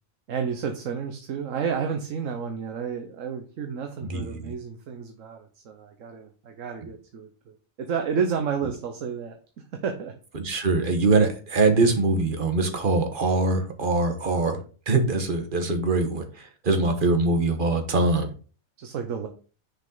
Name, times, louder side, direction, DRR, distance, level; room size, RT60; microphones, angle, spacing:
voice 1, 0.3-9.4 9.7-10.1 18.8-19.3, right 6 dB, 70° right, 5 dB, 1.2 m, -31 dB
voice 2, 4.0-4.5 10.3-14.6 14.9-18.3, right 3 dB, 40° right, 6 dB, 1.3 m, -23 dB
6.6 x 5.2 x 3.8 m, 0.37 s
omnidirectional pair, 1.4 m